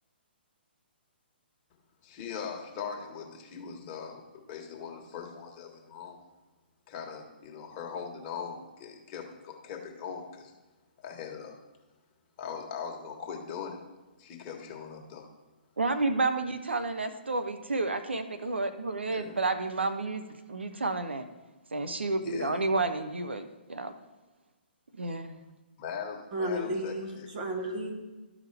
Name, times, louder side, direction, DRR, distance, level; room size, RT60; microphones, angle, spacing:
voice 1, 2.0-6.2 6.9-10.5 11.0-11.6 12.4-13.8 14.2-15.3 19.1-19.3 22.2-22.6 25.8-26.9, left 6 dB, 35° left, 1 dB, 1.4 m, -40 dB
voice 2, 15.8-20.2 20.5-21.2 21.7-23.9 25.0-25.4, right 3 dB, 90° right, 9 dB, 0.7 m, -30 dB
voice 3, 26.3-27.9, right 1 dB, 45° right, 1 dB, 1.9 m, -33 dB
13.0 x 4.8 x 3.4 m, 1.2 s
hypercardioid pair, 135°, 6 cm